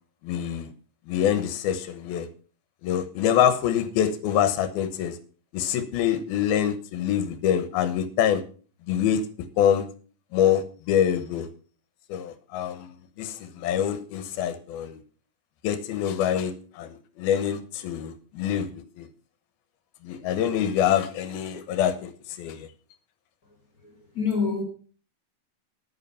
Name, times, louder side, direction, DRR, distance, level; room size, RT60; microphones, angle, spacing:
voice 1, 0.2-0.7 1.1-2.3 2.8-5.2 5.5-8.4 8.9-9.2 9.6-9.9 10.3-11.5 12.1-12.9 13.2-15.0 15.6-19.1 20.0-22.1 22.4-22.7, left 9 dB, 85° left, 11 dB, 3.0 m, -25 dB
voice 2, 23.8-24.6, left 5 dB, 30° left, 1 dB, 1.9 m, -27 dB
10.0 x 9.7 x 5.6 m, 0.39 s
omnidirectional pair, 4.3 m